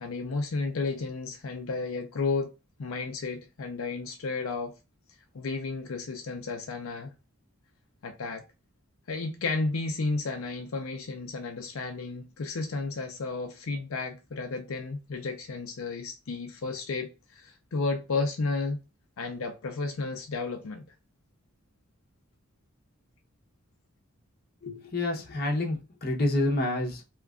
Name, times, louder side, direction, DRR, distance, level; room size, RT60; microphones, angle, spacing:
voice 1, 0.0-2.5 2.8-4.7 5.3-7.1 8.0-8.4 9.1-18.8 19.2-20.8, left 3 dB, 75° left, 0.5 m, -32 dB
voice 2, 24.6-27.0, left 1 dB, 45° left, 0.8 m, -28 dB
2.9 x 2.3 x 3.5 m
head